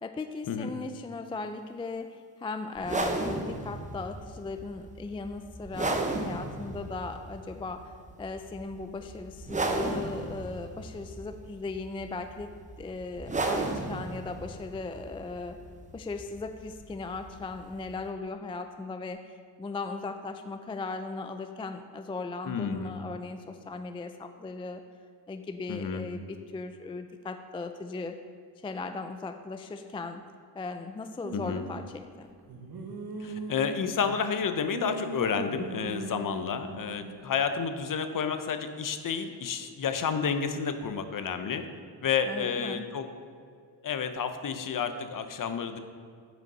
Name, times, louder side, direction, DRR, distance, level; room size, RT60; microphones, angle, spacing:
voice 1, 0.0-7.9 8.2-12.5 12.8-15.6 15.9-24.8 25.3-28.2 28.6-30.2 30.5-32.3 42.3-42.8, left 3 dB, 15° left, 8 dB, 0.3 m, -38 dB
sound 1, 2.8-18.1, right 2 dB, 15° right, 0.8 m, -35 dB
voice 2, 22.4-23.0 25.7-26.1 31.3-31.6 33.2-41.6 42.0-43.1 43.8-45.8, left 6 dB, 45° left, 8 dB, 0.8 m, -30 dB
sound 2, 31.2-31.9 32.5-34.3 34.7-37.2, right 4 dB, 55° right, 1.4 m, -40 dB
7.9 x 5.1 x 5.5 m, 2.2 s
cardioid pair, 75°, 44 cm